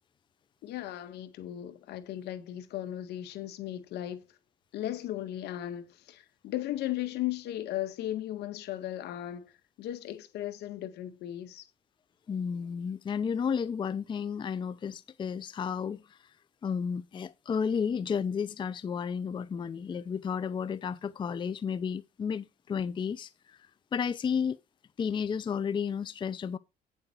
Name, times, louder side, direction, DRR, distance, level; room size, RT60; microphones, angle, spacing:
voice 1, 0.6-4.2 4.7-11.7, left 13 dB, 75° left, 1.7 m, -36 dB
voice 2, 12.3-16.2 16.6-23.6 23.9-24.6 25.0-26.6, left 6 dB, 30° left, 0.5 m, -32 dB
9.0 x 7.5 x 4.4 m
cardioid pair, 110°, 17 cm